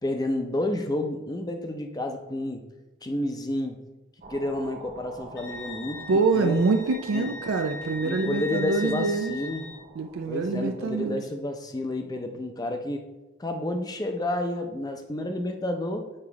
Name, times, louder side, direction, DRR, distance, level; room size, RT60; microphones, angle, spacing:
voice 1, 0.0-2.6 3.0-3.8 4.3-6.0 6.3-6.7 7.1-7.3 8.0-9.6 10.3-13.0 13.4-16.1, left 1 dB, 20° left, 5 dB, 0.5 m, -30 dB
sound 1, 4.2-11.0, right 2 dB, 40° right, 0.6 m, -47 dB
Wind instrument woodwind instrument, 5.3-9.8, left 2 dB, 60° left, 1.3 m, -39 dB
voice 2, 6.1-9.3 10.0-11.2, right 4 dB, 90° right, 5 dB, 0.4 m, -25 dB
8.8 x 3.0 x 4.7 m, 1.0 s
head